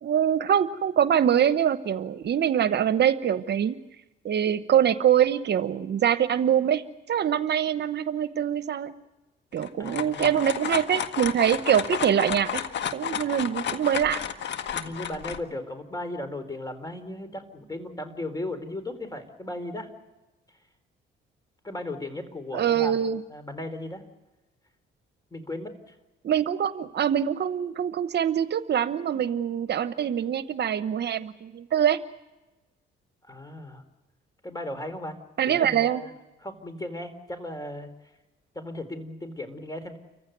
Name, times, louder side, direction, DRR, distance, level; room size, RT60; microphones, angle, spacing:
voice 1, 0.0-3.8 4.2-8.9 9.5-12.6 12.9-14.2 22.5-23.2 26.2-32.0 35.4-36.0, right 9 dB, 60° right, 13 dB, 1.0 m, -24 dB
sound 1, 9.6-15.4, left 8 dB, 65° left, 1.7 m, -32 dB
voice 2, 9.8-10.4 14.7-19.9 21.6-23.0 23.3-24.0 25.3-25.9 33.3-33.8 34.4-36.1 36.4-37.9 38.5-40.0, left 1 dB, 20° left, 10 dB, 4.3 m, -36 dB
29.5 x 15.5 x 9.4 m, 1.1 s
cardioid pair, 90°, 20 cm